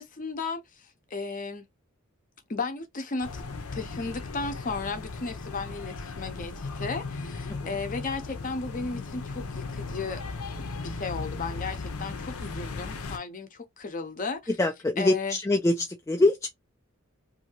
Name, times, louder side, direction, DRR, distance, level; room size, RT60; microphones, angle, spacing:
voice 1, 0.0-1.6 2.5-3.4 3.7-10.2 10.6-14.5 15.0-15.4, left 4 dB, 40° left, 0.7 m, -35 dB
sound 1, 3.2-13.2, left 3 dB, 85° left, 0.7 m, -37 dB
voice 2, 14.6-16.5, left 2 dB, 15° left, 0.3 m, -24 dB
2.7 x 2.7 x 2.8 m
head